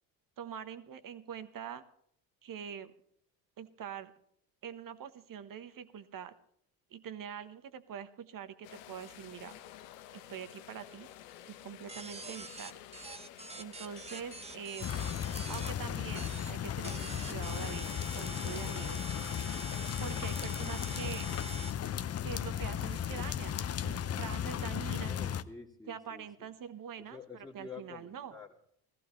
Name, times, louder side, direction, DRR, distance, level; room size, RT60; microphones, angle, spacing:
voice 1, 0.4-1.8 2.4-2.9 3.6-4.1 4.6-6.3 6.9-9.6 10.1-11.1 11.5-12.8 13.6-14.9 15.5-17.9 18.1-19.1 20.0-21.3 22.2-25.2 25.9-28.4, right 8 dB, 40° right, 12 dB, 1.1 m, -44 dB
sound 1, 8.6-21.3, left 12 dB, 80° left, 0.9 m, -52 dB
sound 2, 11.9-15.7 16.1-16.5 16.8-21.7, right 3 dB, 15° right, 0.8 m, -45 dB
sound 3, 14.8-25.4, left 9 dB, 30° left, 0.6 m, -36 dB
voice 2, 25.0-26.5 27.1-28.6, left 5 dB, 10° left, -2 dB, 2.1 m, -49 dB
17.5 x 14.5 x 3.1 m, 0.68 s
hypercardioid pair, 65°, 49 cm